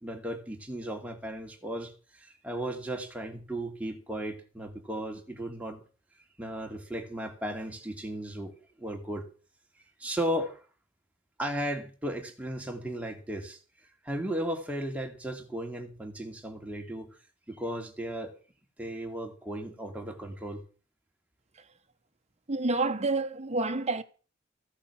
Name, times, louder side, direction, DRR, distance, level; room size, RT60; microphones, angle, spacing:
voice 1, 0.0-5.8 6.4-8.5 8.8-9.3 10.0-10.6 11.4-13.6 14.0-17.2 17.5-18.3 18.8-20.6, right 1 dB, 5° right, 2.7 m, -35 dB
voice 2, 22.5-24.0, right 3 dB, 35° right, 1.2 m, -28 dB
15.5 x 8.6 x 7.3 m
head